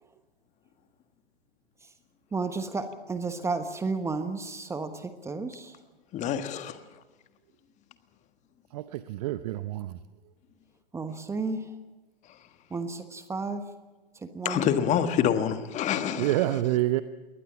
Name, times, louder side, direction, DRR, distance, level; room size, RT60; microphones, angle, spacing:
voice 1, 2.3-5.8 10.9-11.7 12.7-13.6 14.1-14.7, right 3 dB, 10° right, 1.1 m, -32 dB
voice 2, 6.1-6.8 14.4-16.3, left 9 dB, 25° left, 1.6 m, -26 dB
voice 3, 8.7-10.0 16.2-17.0, right 15 dB, 40° right, 0.8 m, -27 dB
22.0 x 19.0 x 7.2 m
figure-of-eight pair, 115°, 29 cm